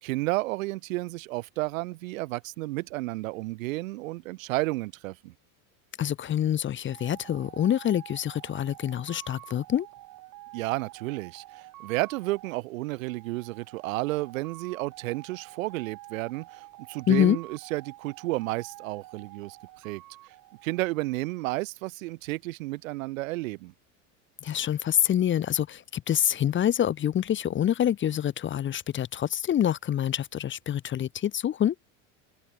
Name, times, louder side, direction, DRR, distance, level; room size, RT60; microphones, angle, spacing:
voice 1, 0.0-5.3 10.5-20.4 20.6-23.7, right 20 dB, 80° right, 2.2 m, -32 dB
voice 2, 6.0-9.9 17.1-17.4 24.4-31.7, left 10 dB, 30° left, 0.8 m, -26 dB
sound 1, 6.9-21.3, right 17 dB, 55° right, 7.7 m, -48 dB
supercardioid pair, 100°, 39 cm